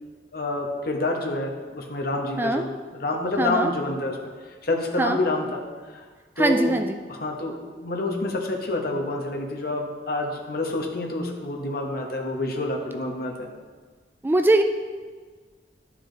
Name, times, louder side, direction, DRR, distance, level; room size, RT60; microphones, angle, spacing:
voice 1, 0.3-4.2 4.6-5.6 5.9-6.0 6.4-6.7 7.1-13.5, left 2 dB, 60° left, 1 dB, 1.2 m, -28 dB
voice 2, 3.4-3.7 5.0-5.2 6.4-7.0 14.2-14.6, right 2 dB, 10° right, 6 dB, 0.3 m, -21 dB
11.0 x 4.6 x 3.9 m, 1.5 s
head